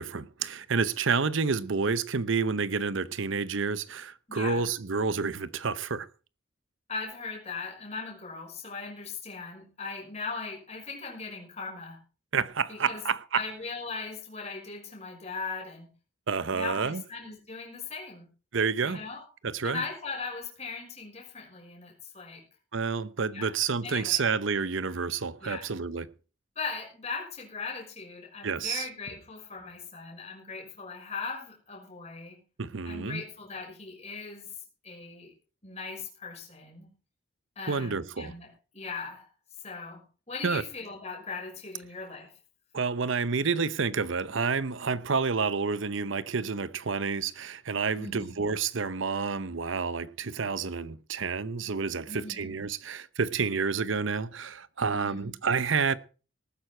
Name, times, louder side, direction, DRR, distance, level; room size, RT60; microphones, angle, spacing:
voice 1, 0.0-6.1 12.3-13.4 16.3-17.0 18.5-19.0 19.4-19.8 22.7-26.1 28.4-28.9 32.6-33.2 37.7-38.3 40.4-40.6 42.7-56.0, right 5 dB, 70° right, 0.8 m, -29 dB
voice 2, 4.3-4.7 6.9-12.0 12.7-13.0 13.3-15.9 16.5-18.3 18.8-19.2 19.6-22.4 23.3-23.5 23.8-24.2 25.4-25.7 26.6-32.4 32.8-34.5 34.8-35.3 35.6-36.9 37.6-42.3 48.0-48.5 52.1-52.6 54.9-55.3, left 4 dB, 30° left, 5.9 m, -39 dB
19.0 x 9.6 x 4.5 m
head